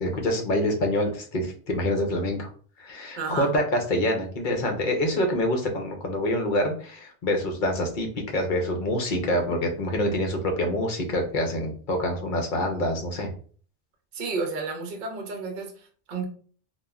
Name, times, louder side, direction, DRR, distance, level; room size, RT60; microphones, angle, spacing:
voice 1, 0.0-2.5 2.8-13.3, left 1 dB, 55° left, 3 dB, 0.7 m, -26 dB
voice 2, 3.2-3.5 14.1-16.2, right 4 dB, 50° right, 3 dB, 0.7 m, -32 dB
3.1 x 2.2 x 2.3 m, 0.43 s
omnidirectional pair, 1.1 m